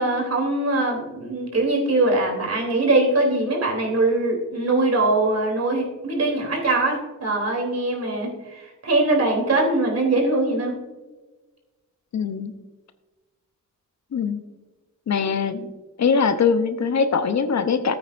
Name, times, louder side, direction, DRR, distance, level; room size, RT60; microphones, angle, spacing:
voice 1, 0.0-10.7, right 2 dB, 50° right, 1 dB, 3.2 m, -22 dB
voice 2, 12.1-12.5 14.1-14.4 15.1-15.7 16.0-17.9, left 5 dB, 60° left, 10 dB, 0.8 m, -22 dB
14.0 x 8.6 x 2.6 m, 1.2 s
cardioid pair, 85°, 32 cm